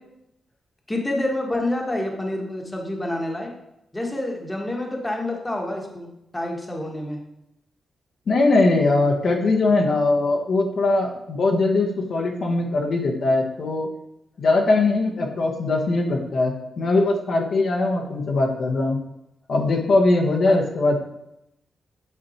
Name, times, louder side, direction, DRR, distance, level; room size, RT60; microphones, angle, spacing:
voice 1, 0.9-3.5 3.9-7.2 20.5-20.6, left 1 dB, 15° left, 1 dB, 1.3 m, -28 dB
voice 2, 8.3-13.9 14.4-19.0 19.5-21.0, left 2 dB, 60° left, 0 dB, 1.1 m, -21 dB
8.5 x 4.3 x 4.2 m, 0.83 s
cardioid pair, 105°, 0 cm